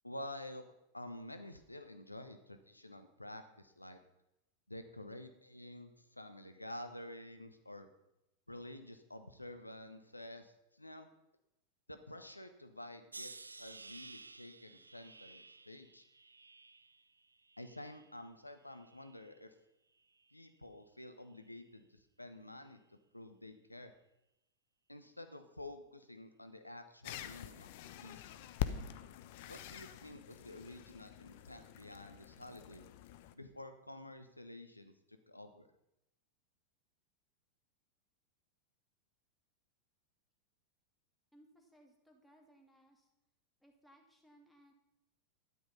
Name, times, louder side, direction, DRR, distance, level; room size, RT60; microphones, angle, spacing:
voice 1, 0.0-0.6 0.9-4.0 4.7-7.9 8.5-11.1 11.9-16.0 17.6-19.5 20.3-23.9 24.9-28.5 29.5-32.9 33.3-35.7, left 1 dB, 85° left, 8 dB, 1.1 m, -50 dB
sound 1, 13.1-18.3 18.7-19.4 20.1-20.4, right 3 dB, 80° right, 0.5 m, -54 dB
sound 2, 27.0-33.3, left 11 dB, 50° left, 0.9 m, -45 dB
voice 2, 41.3-43.1 43.6-44.7, equal, ahead, 1 dB, 2.9 m, -64 dB
12.5 x 10.5 x 5.6 m, 0.88 s
figure-of-eight pair, 90°, 0 cm